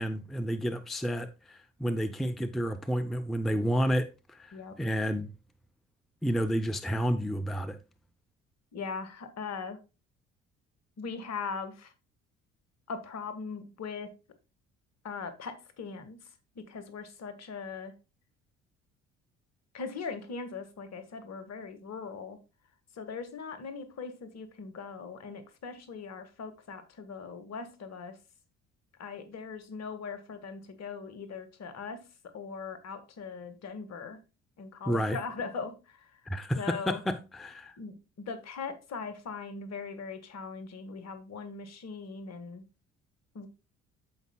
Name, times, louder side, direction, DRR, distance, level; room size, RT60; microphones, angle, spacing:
voice 1, 0.0-5.3 6.2-7.8 34.9-35.2 36.3-37.8, equal, ahead, 0.6 m, -30 dB
voice 2, 8.7-9.8 11.0-11.9 12.9-14.1 15.0-16.2 16.5-17.9 19.7-22.4 23.0-28.1 29.0-32.0 32.3-34.2 34.6-35.7 36.6-37.0 37.8-42.6 43.3-43.5, left 5 dB, 45° left, 1.6 m, -40 dB
14.5 x 5.2 x 2.2 m
figure-of-eight pair, 50°, 36 cm